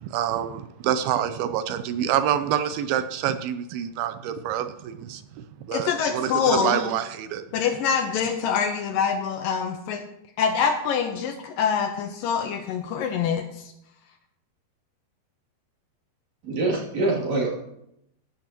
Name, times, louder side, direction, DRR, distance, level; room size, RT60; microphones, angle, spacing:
voice 1, 0.0-5.2 5.6-7.4, right 10 dB, 80° right, 10 dB, 2.5 m, -27 dB
voice 2, 5.7-6.8 7.5-10.0 10.4-13.7, left 6 dB, 75° left, 6 dB, 2.3 m, -25 dB
voice 3, 16.4-17.5, right 2 dB, 45° right, -4 dB, 3.8 m, -24 dB
15.0 x 11.5 x 3.0 m, 0.80 s
omnidirectional pair, 4.5 m